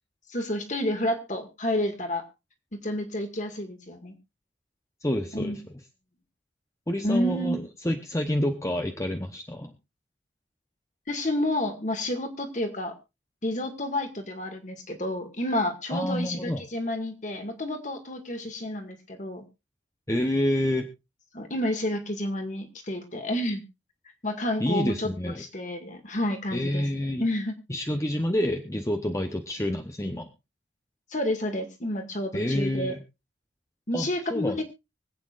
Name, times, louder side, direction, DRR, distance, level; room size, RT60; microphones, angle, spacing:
voice 1, 0.3-2.2 2.7-4.1 5.3-5.6 7.0-7.6 11.1-12.9 13.4-19.4 21.3-23.6 24.2-25.1 25.5-26.8 27.2-27.5 31.1-33.0 33.9-34.6, left 1 dB, 40° left, 5 dB, 2.1 m, -30 dB
voice 2, 5.0-5.6 6.9-9.7 15.9-16.6 20.1-20.9 24.6-25.4 26.5-27.2 27.7-30.3 32.3-33.0 33.9-34.6, left 1 dB, 15° left, 5 dB, 0.9 m, -28 dB
24.5 x 8.7 x 2.5 m, 0.26 s
head